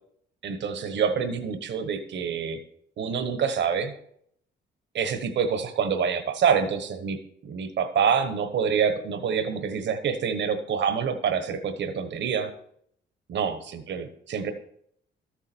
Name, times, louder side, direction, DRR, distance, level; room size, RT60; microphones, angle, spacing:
voice 1, 0.4-2.6 3.0-3.9 4.9-7.2 7.4-12.5 13.3-14.5, right 6 dB, 65° right, 9 dB, 1.2 m, -26 dB
12.5 x 7.3 x 4.4 m, 0.68 s
cardioid pair, 90°, 20 cm